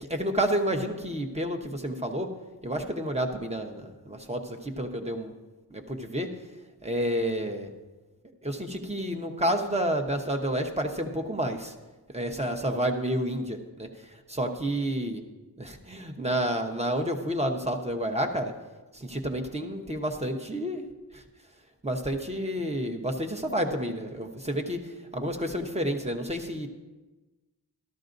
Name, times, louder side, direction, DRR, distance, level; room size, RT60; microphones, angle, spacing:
voice 1, 0.0-2.3 2.6-5.3 5.7-6.3 6.8-7.7 8.4-11.7 12.1-13.9 14.3-15.2 15.6-18.5 18.9-20.8 21.1-21.2 21.8-24.8 25.1-26.7, right 1 dB, 15° right, 4 dB, 1.0 m, -30 dB
13.5 x 13.0 x 2.6 m, 1.2 s
wide cardioid pair, 105°, 38 cm